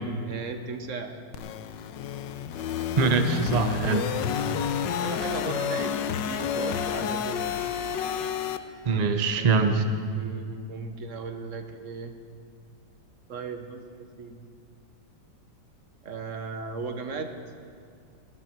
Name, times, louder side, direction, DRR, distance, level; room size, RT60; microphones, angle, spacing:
voice 1, 0.2-1.3 4.9-7.6 9.4-9.7 10.1-12.2 13.3-14.5 16.0-17.5, right 4 dB, 50° right, 7 dB, 1.1 m, -37 dB
sound 1, 1.3-8.6, left 8 dB, 75° left, 1.3 m, -30 dB
voice 2, 3.0-4.1 8.8-9.8, right 4 dB, 80° right, 7 dB, 0.3 m, -23 dB
19.5 x 13.5 x 4.6 m, 2.3 s
omnidirectional pair, 2.1 m